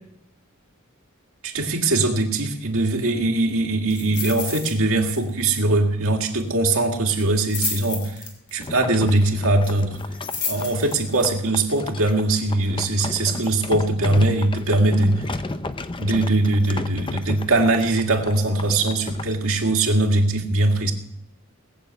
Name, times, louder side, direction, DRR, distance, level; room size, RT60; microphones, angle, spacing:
voice 1, 1.4-8.2 8.5-10.0 10.5-15.3 16.0-20.9, right 2 dB, 70° right, 2 dB, 2.1 m, -21 dB
sound 1, 3.9-4.7 5.0-5.3 5.6-5.7 7.2-8.6 9.9-11.2 11.8-11.9, left 5 dB, 55° left, 3.2 m, -31 dB
sound 2, 8.6-19.3, left 3 dB, 25° left, 0.6 m, -34 dB
20.0 x 6.9 x 8.3 m, 0.77 s
head